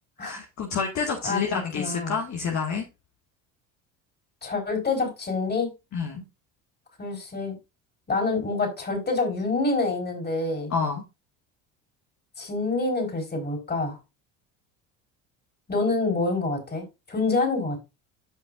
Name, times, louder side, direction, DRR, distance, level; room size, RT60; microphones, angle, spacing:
voice 1, 0.2-2.8 5.9-6.2 10.7-11.0, left 5 dB, 45° left, 2 dB, 1.9 m, -28 dB
voice 2, 1.2-2.1 4.4-5.7 7.0-7.6 8.1-10.7 12.4-14.0 15.7-17.8, left 3 dB, 25° left, 3 dB, 4.3 m, -27 dB
13.5 x 5.4 x 2.5 m, 0.25 s
supercardioid pair, 90°, 38 cm